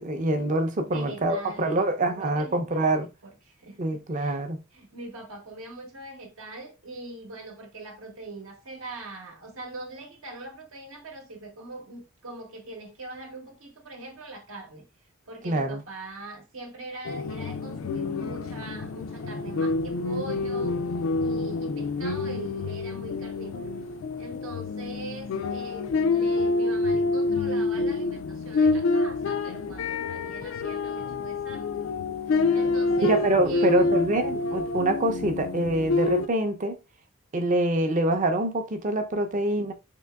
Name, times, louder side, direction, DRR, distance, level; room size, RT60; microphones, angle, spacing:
voice 1, 0.0-3.1 3.8-4.6 15.4-15.8 33.0-36.7 37.3-39.7, right 1 dB, 40° right, 0.5 m, -25 dB
voice 2, 0.8-4.4 4.7-14.9 15.3-20.8 21.2-23.7 24.2-31.9 32.5-33.2 33.4-33.9, right 2 dB, 75° right, 0.9 m, -41 dB
sound 1, 17.0-36.3, left 3 dB, 75° left, 0.4 m, -27 dB
3.7 x 2.8 x 2.2 m
head